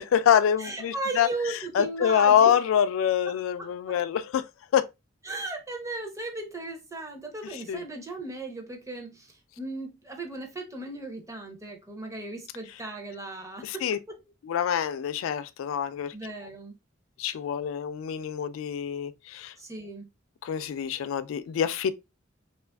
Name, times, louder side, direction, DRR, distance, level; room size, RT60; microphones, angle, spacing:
voice 1, 0.0-1.3 1.8-4.4 4.7-4.8 7.7-7.8 13.6-14.0 14.5-16.1 17.2-19.5 20.4-21.9, left 8 dB, 85° left, 0.3 m, -25 dB
voice 2, 0.6-2.5 3.3-4.0 5.2-14.0 16.1-16.8 19.6-20.1, right 2 dB, 15° right, 0.6 m, -37 dB
2.8 x 2.4 x 2.2 m
head